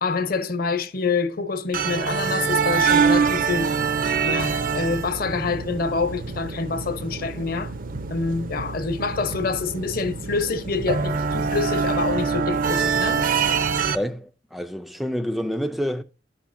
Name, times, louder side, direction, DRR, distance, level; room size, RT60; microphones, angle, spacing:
voice 1, 0.0-3.7 4.2-7.7 8.1-13.3, left 4 dB, 55° left, 0.8 m, -26 dB
sound 1, 1.7-14.0, right 5 dB, 50° right, 0.5 m, -25 dB
voice 2, 13.9-16.0, equal, ahead, 0.3 m, -28 dB
10.0 x 5.7 x 2.6 m
head